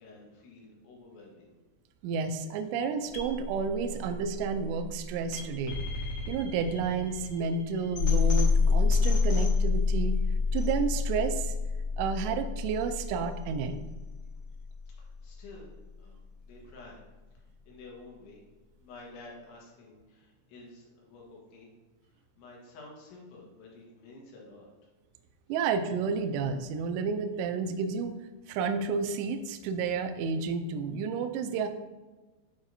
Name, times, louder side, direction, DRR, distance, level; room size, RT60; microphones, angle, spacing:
voice 1, 0.0-1.6 15.0-17.0 17.7-18.4 18.8-21.7 22.0-24.7, left 2 dB, 85° left, -3 dB, 3.8 m, -51 dB
voice 2, 2.0-5.8 6.3-10.2 10.5-11.5 12.0-13.8 25.5-28.2 28.5-31.7, right 5 dB, 85° right, 7 dB, 2.6 m, -31 dB
sound 1, 3.1-15.1, left 4 dB, 55° left, 1.6 m, -28 dB
8.8 x 4.8 x 2.7 m, 1.2 s
omnidirectional pair, 5.3 m